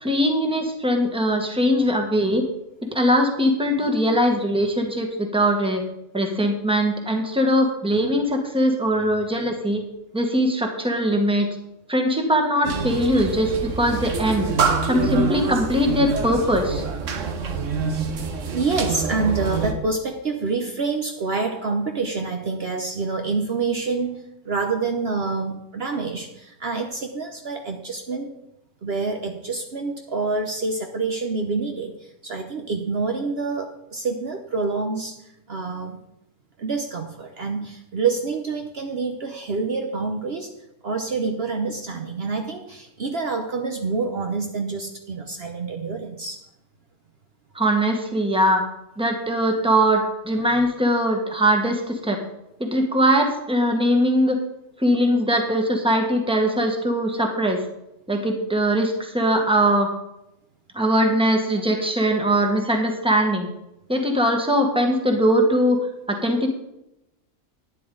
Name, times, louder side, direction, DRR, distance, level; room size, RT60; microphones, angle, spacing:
voice 1, 0.0-2.4 2.9-5.8 6.1-9.8 10.1-11.5 11.9-14.5 14.8-16.8 47.5-48.6 49.0-52.2 52.6-54.4 54.8-57.6 58.1-59.9 60.7-63.5 63.9-65.8 66.1-66.5, equal, 5° right, 2 dB, 1.5 m, -21 dB
sound 1, 12.6-19.7, right 5 dB, 75° right, 1.4 m, -26 dB
voice 2, 18.5-28.3 28.8-36.0 36.6-40.5 40.8-46.4, right 4 dB, 55° right, 3 dB, 1.1 m, -27 dB
11.5 x 9.9 x 3.9 m, 0.86 s
omnidirectional pair, 1.3 m